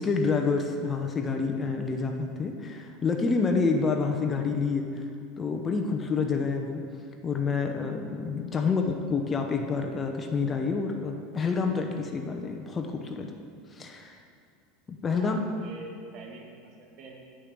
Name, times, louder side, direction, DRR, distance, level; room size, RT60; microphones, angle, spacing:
voice 1, 0.0-5.0 5.4-6.8 7.2-13.3 13.7-14.2 14.9-15.4, left 4 dB, 25° left, 4 dB, 0.7 m, -28 dB
voice 2, 15.2-17.2, right 3 dB, 45° right, 0 dB, 1.7 m, -45 dB
9.0 x 5.1 x 6.8 m, 2.3 s
supercardioid pair, 125°, 0 cm